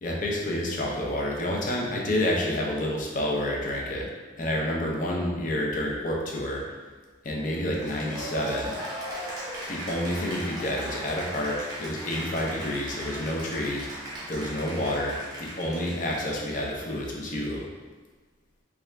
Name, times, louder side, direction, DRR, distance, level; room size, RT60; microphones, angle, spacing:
voice 1, 0.0-4.1 4.4-6.6 7.2-8.7 9.7-13.9 14.3-17.7, left 1 dB, 45° left, -2 dB, 0.5 m, -29 dB
Cheering / Applause, 7.8-17.3, equal, 20° right, 0.8 m, -38 dB
3.3 x 2.4 x 3.3 m, 1.3 s
head